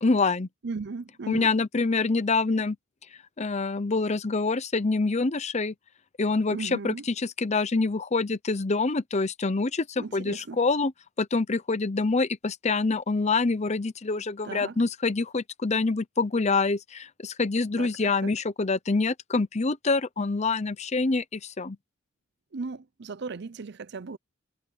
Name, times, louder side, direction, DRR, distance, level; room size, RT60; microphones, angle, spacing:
voice 1, 0.0-0.5 1.3-2.8 3.4-5.7 6.2-10.9 11.2-21.8, left 3 dB, 35° left, 0.7 m, -26 dB
voice 2, 0.6-1.5 6.5-7.0 10.0-10.6 14.4-14.8 17.8-18.3 22.5-24.2, right 4 dB, 60° right, 0.6 m, -37 dB
head